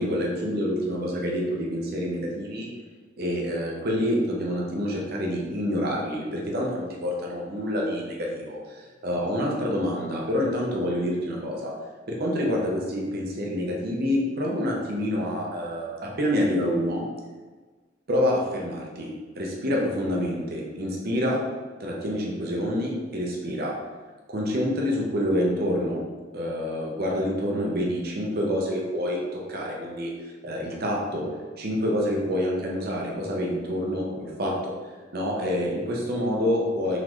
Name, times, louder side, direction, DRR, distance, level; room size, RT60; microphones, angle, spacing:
voice 1, 0.0-2.7 3.2-11.7 12.1-17.0 18.1-19.1 19.3-21.4 21.8-23.7 24.3-26.0 26.3-30.1 30.4-31.3 31.6-34.7 35.1-37.0, equal, 55° right, -2 dB, 0.8 m, -27 dB
4.1 x 3.7 x 3.1 m, 1.4 s
head